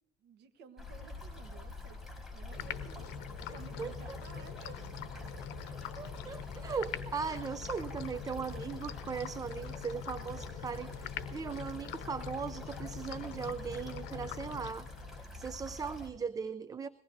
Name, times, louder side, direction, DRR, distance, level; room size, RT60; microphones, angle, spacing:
voice 1, 0.2-3.1 3.4-5.0, right 6 dB, 80° right, 9 dB, 1.2 m, -55 dB
sound 1, 0.8-16.1, left 2 dB, ahead, 4.3 m, -46 dB
sound 2, 2.5-15.2, left 9 dB, 90° left, 0.8 m, -44 dB
voice 2, 3.8-4.2 5.7-14.9 15.3-16.9, right 5 dB, 20° right, 12 dB, 0.4 m, -39 dB
22.0 x 18.5 x 2.6 m, 0.94 s
cardioid pair, 110°, 17 cm